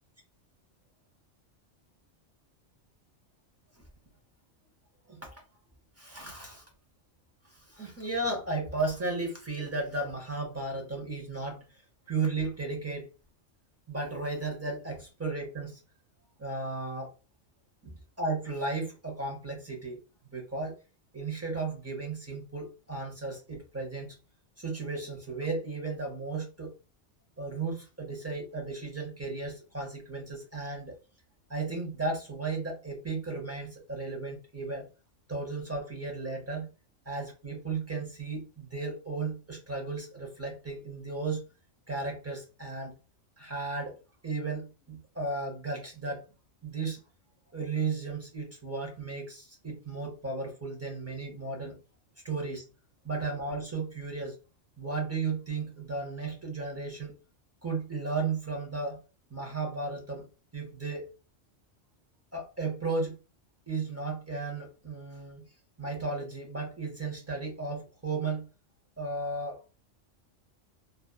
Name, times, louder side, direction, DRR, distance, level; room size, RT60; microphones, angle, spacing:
voice 1, 5.1-5.4 6.0-6.6 7.4-11.8 12.1-13.1 13.9-15.8 16.4-17.1 17.8-20.0 20.3-20.8 21.1-24.2 24.6-26.7 27.4-31.0 31.5-34.9 35.3-36.7 37.1-41.4 41.9-42.9 43.4-44.0 44.2-46.2 46.6-47.0 47.5-51.8 52.2-52.7 53.0-54.4 54.8-57.1 57.6-59.0 59.3-60.3 60.5-61.1 62.3-63.2 63.7-65.4 65.8-68.5 69.0-69.6, right 3 dB, 20° right, 1 dB, 0.4 m, -34 dB
2.6 x 2.4 x 2.2 m, 0.32 s
omnidirectional pair, 1.3 m